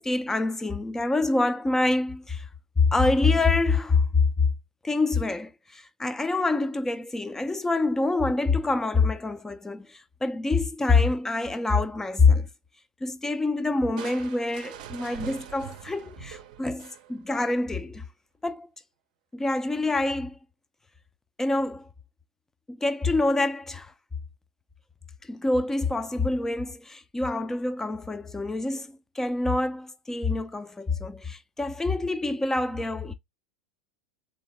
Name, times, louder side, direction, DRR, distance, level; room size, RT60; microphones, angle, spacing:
voice 1, 0.0-2.5 2.8-4.2 4.8-12.5 13.0-18.0 18.4-18.7 19.3-20.3 21.4-21.9 22.7-23.9 25.2-33.1, left 3 dB, 10° left, 0.4 m, -26 dB
Crushing, 14.0-17.3, right 9 dB, 55° right, 0.6 m, -42 dB
3.4 x 2.6 x 3.0 m
figure-of-eight pair, 85°, 5 cm